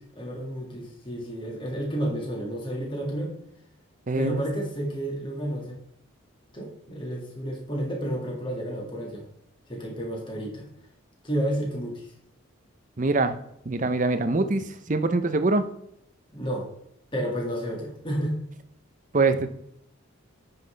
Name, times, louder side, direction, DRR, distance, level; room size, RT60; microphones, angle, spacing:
voice 1, 0.1-3.3 4.2-5.8 6.5-9.2 9.7-10.7 11.2-12.1 16.3-16.7 17.1-18.4, equal, 25° left, -1 dB, 1.9 m, -31 dB
voice 2, 4.1-4.4 13.0-13.4 13.7-15.6 19.1-19.5, right 3 dB, 35° right, 10 dB, 0.6 m, -23 dB
9.3 x 5.7 x 3.3 m, 0.75 s
head